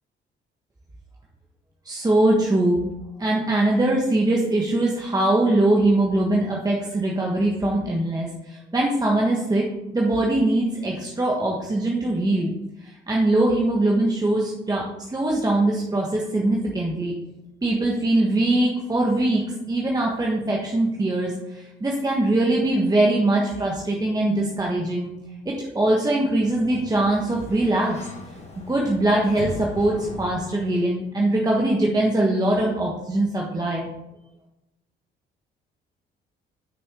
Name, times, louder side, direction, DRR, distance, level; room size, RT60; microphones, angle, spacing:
voice 1, 1.8-2.8 3.2-9.6 9.9-12.5 12.8-17.1 17.6-25.1 25.6-28.0 28.7-33.9, right 1 dB, 20° right, -2 dB, 1.4 m, -22 dB
Sliding door, 26.1-31.0, left 2 dB, 35° left, 2.0 m, -39 dB
6.2 x 6.1 x 5.0 m, 0.93 s
cardioid pair, 90°, 20 cm